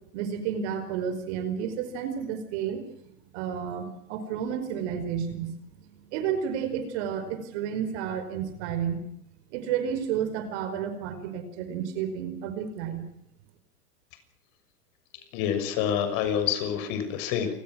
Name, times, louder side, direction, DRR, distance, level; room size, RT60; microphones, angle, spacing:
voice 1, 0.1-2.8 3.3-5.5 6.1-9.0 9.5-13.0, right 8 dB, 45° right, 10 dB, 5.0 m, -31 dB
voice 2, 15.3-17.5, left 9 dB, 40° left, 8 dB, 6.4 m, -27 dB
29.0 x 20.5 x 6.3 m, 0.73 s
hypercardioid pair, 125°, 47 cm